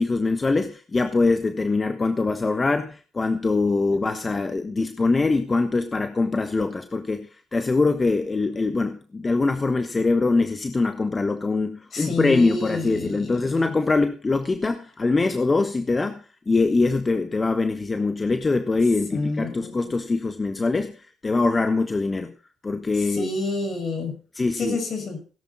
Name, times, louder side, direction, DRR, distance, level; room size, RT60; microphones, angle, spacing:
voice 1, 0.0-22.3 22.6-23.3 24.3-24.8, left 3 dB, 25° left, 8 dB, 1.2 m, -23 dB
voice 2, 11.9-13.6 19.1-19.9 23.1-24.2 24.5-25.2, left 3 dB, 55° left, 5 dB, 5.7 m, -29 dB
17.5 x 11.0 x 4.1 m, 0.37 s
cardioid pair, 90°, 0 cm